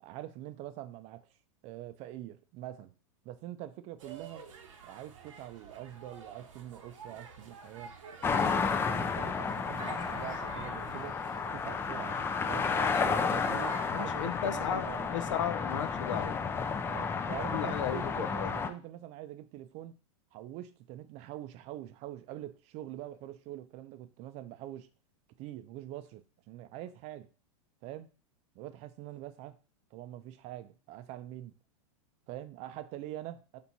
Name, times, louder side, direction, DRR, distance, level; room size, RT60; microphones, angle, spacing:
voice 1, 0.0-1.2 1.6-2.9 3.2-4.4 4.8-7.9 8.2-11.1 11.5-12.2 12.5-15.1 16.8-20.0 20.3-24.9 25.4-26.2 26.5-27.3 27.8-28.1 28.5-29.6 29.9-31.5 32.3-33.6, right 13 dB, 40° right, 0.5 m, -44 dB
sound 1, 4.0-13.9, right 6 dB, 80° right, 0.9 m, -48 dB
sound 2, 8.2-18.7, left 5 dB, 15° left, 0.4 m, -32 dB
voice 2, 13.9-16.4 17.5-18.5, left 10 dB, 80° left, 0.5 m, -35 dB
3.4 x 3.0 x 4.1 m
hypercardioid pair, 120°, 16 cm